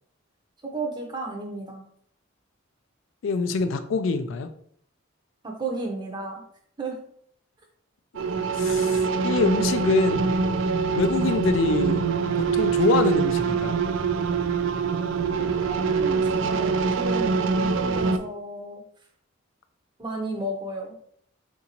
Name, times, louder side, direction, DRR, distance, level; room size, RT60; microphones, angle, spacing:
voice 1, 0.7-1.8 5.4-6.4 6.8-7.0 15.6-18.8 20.0-20.9, right 2 dB, 20° right, 1 dB, 0.6 m, -33 dB
voice 2, 3.2-4.5 8.6-10.3 10.9-12.1 12.4-13.8, left 4 dB, 70° left, 10 dB, 0.3 m, -25 dB
sound 1, 8.1-18.2, right 5 dB, 70° right, 0.3 m, -24 dB
3.8 x 2.6 x 2.9 m, 0.65 s
head